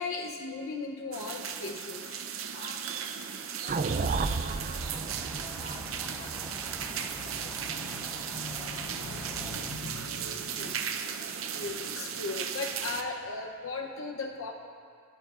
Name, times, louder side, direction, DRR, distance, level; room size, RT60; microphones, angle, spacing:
voice 1, 0.0-2.0 6.8-7.1 7.4-11.1 11.5-14.5, left 3 dB, 75° left, 1 dB, 0.8 m, -38 dB
sound 1, 1.1-13.0, right 8 dB, 80° right, 0.7 m, -36 dB
voice 2, 2.5-9.8, left 3 dB, 40° left, 4 dB, 1.0 m, -53 dB
sound 2, 3.7-8.0, right 4 dB, 40° right, 0.4 m, -33 dB
By a lake cars swans and ducks, 4.8-9.8, equal, ahead, 0.7 m, -46 dB
20.5 x 12.0 x 2.5 m, 2.2 s
head